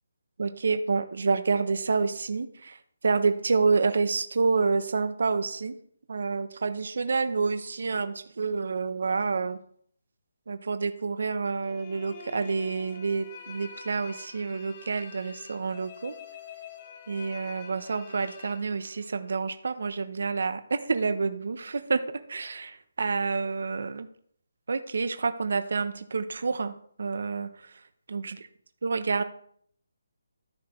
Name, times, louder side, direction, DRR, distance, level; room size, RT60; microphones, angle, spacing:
voice 1, 0.4-2.8 3.0-5.8 6.1-9.6 10.5-16.1 17.1-22.0 22.3-24.1 24.7-27.5 28.1-28.2 28.8-29.2, right 4 dB, 60° right, 10 dB, 0.8 m, -28 dB
sound 1, 11.6-19.4, left 6 dB, 25° left, 0.9 m, -46 dB
14.0 x 4.9 x 3.1 m, 0.62 s
hypercardioid pair, 170°, 0 cm